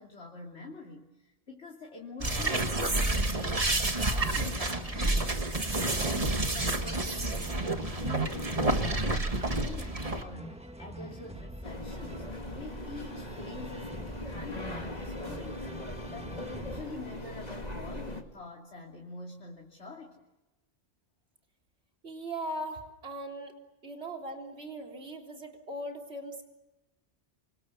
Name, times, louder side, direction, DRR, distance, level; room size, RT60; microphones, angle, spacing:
voice 1, 0.0-3.5 3.8-12.3 12.5-20.2, left 2 dB, 75° left, -1 dB, 3.2 m, -46 dB
sound 1, 2.2-10.2, right 2 dB, 30° right, 1.8 m, -29 dB
sound 2, 3.0-16.8, right 1 dB, 5° right, 1.5 m, -45 dB
sound 3, 11.6-18.2, left 1 dB, 35° left, 2.6 m, -40 dB
voice 2, 22.0-23.5 23.8-26.4, right 1 dB, 65° right, 1 dB, 4.0 m, -39 dB
28.5 x 27.0 x 7.1 m, 1.0 s
omnidirectional pair, 1.2 m